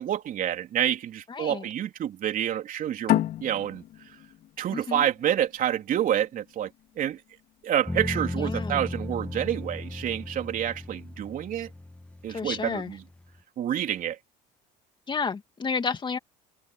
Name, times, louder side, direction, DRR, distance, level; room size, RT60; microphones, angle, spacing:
voice 1, 0.0-3.8 4.6-6.7 7.0-7.2 7.6-11.7 12.2-13.0 13.6-14.2, right 10 dB, 50° right, 3.6 m, -28 dB
voice 2, 1.3-1.6 4.7-5.1 8.3-8.8 12.3-12.9 15.1-16.2, left 5 dB, 25° left, 2.3 m, -31 dB
sound 1, 3.1-6.3, left 12 dB, 60° left, 3.7 m, -29 dB
sound 2, 7.8-13.4, left 2 dB, 5° left, 1.7 m, -36 dB
supercardioid pair, 95°, 18 cm